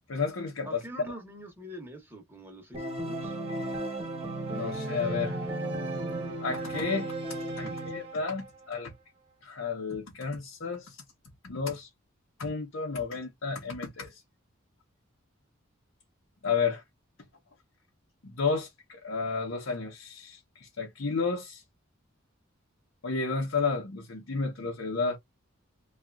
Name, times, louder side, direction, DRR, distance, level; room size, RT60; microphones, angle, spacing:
voice 1, 0.1-0.8 4.5-5.4 6.4-8.9 9.4-11.0 11.4-11.9 12.4-14.2 16.4-16.8 18.2-21.6 23.0-25.2, left 4 dB, 70° left, 0.8 m, -32 dB
voice 2, 0.7-3.4 7.6-7.7, equal, 10° right, 0.9 m, -44 dB
Organ, 2.7-8.5, right 1 dB, 30° right, 1.1 m, -34 dB
2.8 x 2.4 x 2.3 m
head